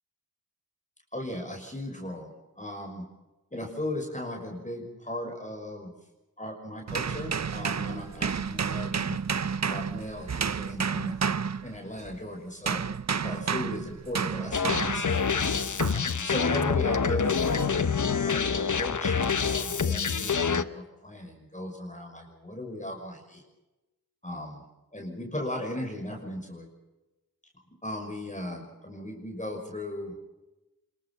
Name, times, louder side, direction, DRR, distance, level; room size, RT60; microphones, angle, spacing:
voice 1, 1.1-3.1 3.5-5.9 6.4-9.2 9.7-11.3 11.6-12.8 13.2-15.3 15.9-23.4 24.2-24.6 24.9-26.7 27.8-30.2, left 1 dB, 20° left, 1 dB, 5.8 m, -37 dB
sound 1, 6.9-12.2 12.7-15.2 15.8-16.1, right 6 dB, 50° right, 0.7 m, -30 dB
sound 2, 14.5-20.6, left 6 dB, 60° left, 1.1 m, -26 dB
26.0 x 22.5 x 6.0 m, 1.0 s
wide cardioid pair, 60°, 35 cm